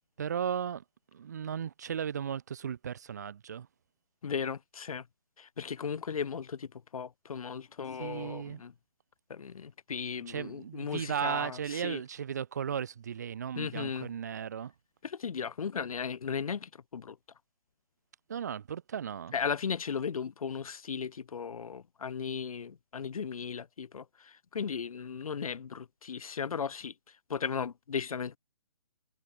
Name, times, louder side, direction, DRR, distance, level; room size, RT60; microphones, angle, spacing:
voice 1, 0.2-0.8 1.1-3.7 8.0-8.6 10.3-14.7 18.3-19.3, right 8 dB, 30° right, 0.6 m, -35 dB
voice 2, 4.2-5.1 5.4-8.7 9.3-12.0 13.6-14.1 15.0-17.2 19.3-26.9 27.3-28.4, left 6 dB, 80° left, 0.7 m, -36 dB
hypercardioid pair, 170°, 18 cm